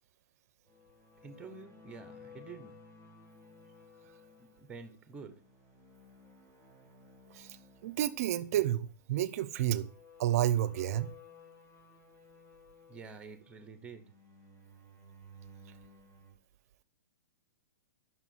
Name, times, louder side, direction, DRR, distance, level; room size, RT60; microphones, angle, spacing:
sound 1, 0.6-16.3, left 3 dB, 20° left, 2.8 m, -57 dB
voice 1, 1.2-2.8 4.6-5.4 12.9-14.1, right 4 dB, 10° right, 0.7 m, -48 dB
voice 2, 7.8-9.9 10.2-11.1, right 12 dB, 50° right, 0.5 m, -30 dB
5.7 x 4.8 x 5.5 m
hypercardioid pair, 145°, 10 cm